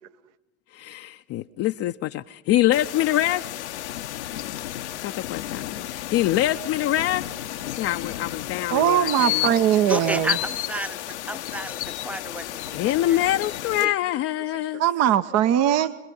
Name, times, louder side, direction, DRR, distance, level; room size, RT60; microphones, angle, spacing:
voice 1, 0.7-3.5 5.0-7.3 7.8-9.5 12.7-14.8, left 14 dB, 45° left, 0.7 m, -25 dB
sound 1, 2.7-13.8, left 14 dB, 80° left, 1.0 m, -32 dB
voice 2, 8.7-10.4 14.7-16.0, right 10 dB, 50° right, 0.9 m, -20 dB
voice 3, 9.9-13.2 13.7-14.0, right 1 dB, 5° right, 0.9 m, -32 dB
25.5 x 21.0 x 5.4 m
hypercardioid pair, 80°, 34 cm